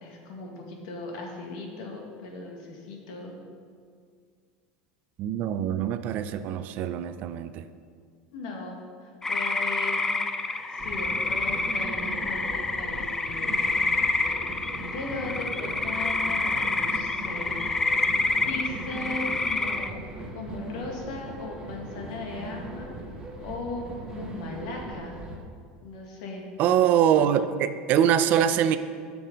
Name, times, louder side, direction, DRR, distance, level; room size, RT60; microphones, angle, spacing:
voice 1, 0.0-3.4 8.3-10.1 10.7-13.6 14.9-17.6 18.0-18.1 18.5-20.0 20.3-22.9 23.4-25.2 25.8-26.4, left 3 dB, 75° left, 0 dB, 1.8 m, -38 dB
voice 2, 5.2-7.6 26.6-28.8, right 9 dB, 50° right, 11 dB, 0.5 m, -23 dB
sound 1, 9.2-19.9, left 3 dB, 10° left, 0.4 m, -28 dB
sound 2, 10.8-25.4, right 2 dB, 20° right, 1.4 m, -39 dB
9.0 x 6.1 x 5.2 m, 2.1 s
supercardioid pair, 130°, 4 cm